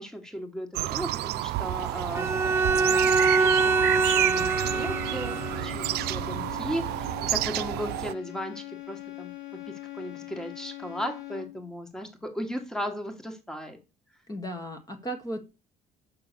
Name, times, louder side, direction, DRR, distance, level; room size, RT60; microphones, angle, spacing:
voice 1, 0.0-3.0 3.3-9.3 9.7-13.8, equal, 5° left, 1.6 m, -36 dB
sound 1, 0.7-8.1, right 16 dB, 75° right, 0.4 m, -30 dB
Bowed string instrument, 2.1-5.7, right 3 dB, 15° right, 1.0 m, -24 dB
sound 2, 4.5-11.7, left 18 dB, 70° left, 3.2 m, -41 dB
voice 2, 14.3-15.4, right 1 dB, 20° left, 1.6 m, -35 dB
5.9 x 5.8 x 6.8 m
cardioid pair, 110°, 17 cm